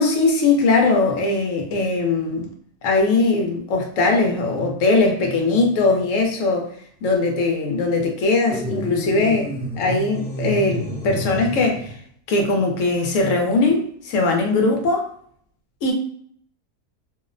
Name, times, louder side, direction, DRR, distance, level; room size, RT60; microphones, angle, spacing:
voice 1, 0.0-2.5 2.8-6.7 7.0-12.0 12.3-15.1 15.8-15.9, left 3 dB, 65° left, 0.8 m, -20 dB
sound 1, 8.5-12.0, equal, 5° left, 0.5 m, -29 dB
2.7 x 2.0 x 2.5 m
omnidirectional pair, 1.6 m